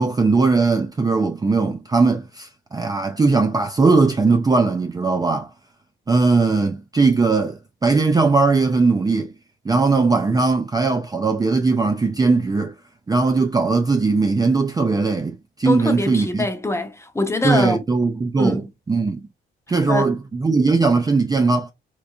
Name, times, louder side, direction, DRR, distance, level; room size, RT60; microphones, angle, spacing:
voice 1, 0.0-5.5 6.1-9.3 9.7-12.7 13.1-16.4 17.4-18.6 18.9-19.2 19.7-21.7, right 4 dB, 20° right, 0.4 m, -19 dB
voice 2, 15.6-17.8 18.4-18.6 19.8-20.1, left 2 dB, 15° left, 0.8 m, -23 dB
3.3 x 3.0 x 2.4 m
cardioid pair, 90°, 20 cm